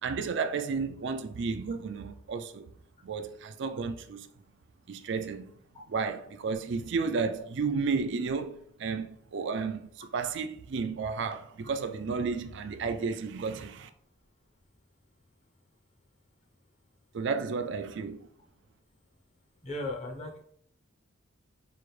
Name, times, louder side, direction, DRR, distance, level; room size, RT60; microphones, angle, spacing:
voice 1, 0.0-2.7 3.0-4.3 4.9-5.5 5.9-13.9 17.1-18.3, right 5 dB, 60° right, 0.4 m, -32 dB
voice 2, 19.6-20.4, left 1 dB, 35° left, 0.8 m, -36 dB
4.8 x 2.5 x 3.2 m
head